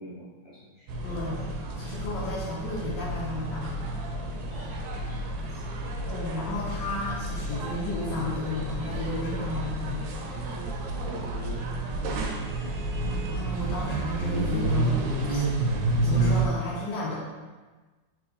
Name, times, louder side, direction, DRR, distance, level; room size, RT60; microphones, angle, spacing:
voice 1, 0.0-0.9 4.4-5.6 10.3-12.5, right 2 dB, 30° right, -10 dB, 0.5 m, -44 dB
sound 1, 0.9-16.5, right 2 dB, 90° right, 1.3 m, -30 dB
voice 2, 1.0-3.9 6.0-10.1 13.3-15.0 15.3-15.4 16.0-17.2, left 2 dB, 80° left, -6 dB, 1.3 m, -33 dB
4.4 x 3.5 x 2.4 m, 1.3 s
omnidirectional pair, 2.0 m